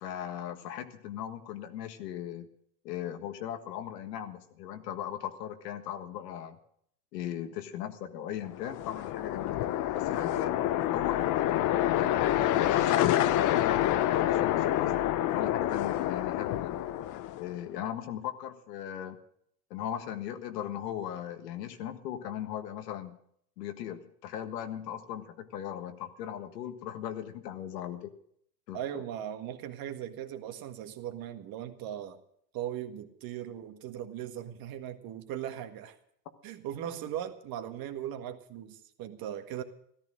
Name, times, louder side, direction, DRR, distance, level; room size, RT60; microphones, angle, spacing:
voice 1, 0.0-2.5 2.8-6.6 7.1-10.5 10.9-14.9 15.3-16.8 17.4-19.2 19.7-23.2 23.6-28.1 28.7-29.0, left 10 dB, 85° left, 8 dB, 1.7 m, -38 dB
sound 1, 8.5-17.6, left 13 dB, 40° left, 0.8 m, -27 dB
voice 2, 28.7-32.2 32.5-36.0 36.4-39.6, right 10 dB, 45° right, 7 dB, 1.8 m, -38 dB
14.0 x 13.5 x 6.3 m, 0.67 s
supercardioid pair, 110°, 48 cm